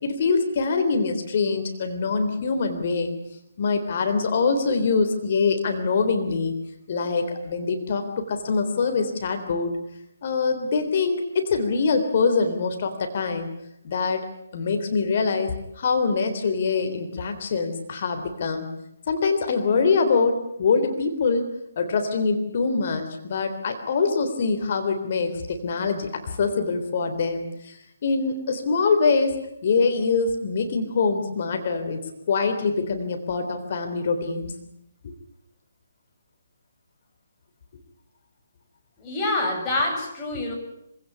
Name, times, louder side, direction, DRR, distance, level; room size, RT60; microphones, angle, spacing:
voice 1, 0.0-3.1 3.6-6.5 6.9-9.7 10.2-13.5 13.8-14.3 14.5-18.7 19.1-32.0 32.3-34.5 35.0-35.1, left 4 dB, 50° left, 6 dB, 3.6 m, -24 dB
voice 2, 39.0-40.5, left 2 dB, 20° left, 0 dB, 7.7 m, -26 dB
25.5 x 17.5 x 10.0 m, 0.78 s
figure-of-eight pair, 140°, 0 cm